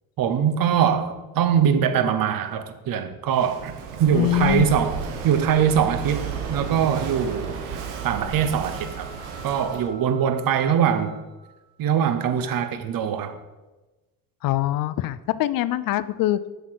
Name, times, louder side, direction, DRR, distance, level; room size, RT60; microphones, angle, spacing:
voice 1, 0.2-3.7 4.0-7.6 8.0-9.1 9.4-11.2 11.8-13.4, right 8 dB, 55° right, 10 dB, 1.0 m, -22 dB
Walk footsteps / Wind / Waves surf, 3.3-9.9, right 6 dB, 85° right, 1.2 m, -33 dB
voice 2, 4.1-4.7 14.4-16.4, left 14 dB, 55° left, 16 dB, 0.5 m, -23 dB
sound 1, 7.7-11.8, right 2 dB, 25° right, 1.6 m, -48 dB
7.5 x 5.8 x 4.6 m, 1.1 s
supercardioid pair, 80°, 41 cm